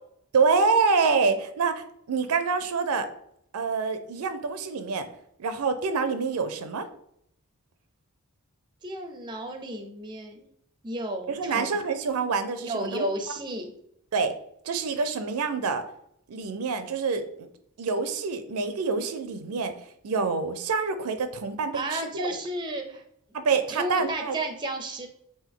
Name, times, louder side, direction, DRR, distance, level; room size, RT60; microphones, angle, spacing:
voice 1, 0.3-3.1 3.5-5.1 5.4-6.9 11.3-13.4 14.1-14.3 14.7-15.8 16.3-17.2 17.8-19.7 20.0-22.3 23.3-24.4, right 4 dB, 85° right, 9 dB, 0.5 m, -26 dB
voice 2, 8.8-10.5 10.8-11.8 12.6-13.7 21.7-23.0 23.7-25.1, right 1 dB, 20° right, 5 dB, 0.4 m, -32 dB
3.5 x 2.6 x 3.7 m, 0.72 s
head